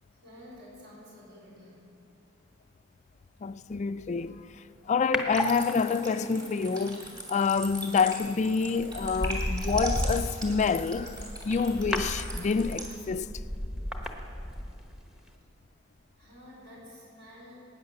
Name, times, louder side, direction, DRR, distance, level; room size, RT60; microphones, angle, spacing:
voice 1, 0.2-1.8 16.2-17.6, left 1 dB, 55° right, 4.5 m, -50 dB
voice 2, 3.4-4.5 4.9-11.2 11.4-13.3, left 5 dB, 35° left, 0.4 m, -27 dB
sound 1, 5.1-6.2 8.0-8.3 8.8-15.0 15.3-15.4, left 1 dB, 5° right, 1.0 m, -34 dB
sound 2, 5.3-13.0, right 1 dB, 20° right, 2.8 m, -38 dB
18.0 x 9.6 x 6.6 m
head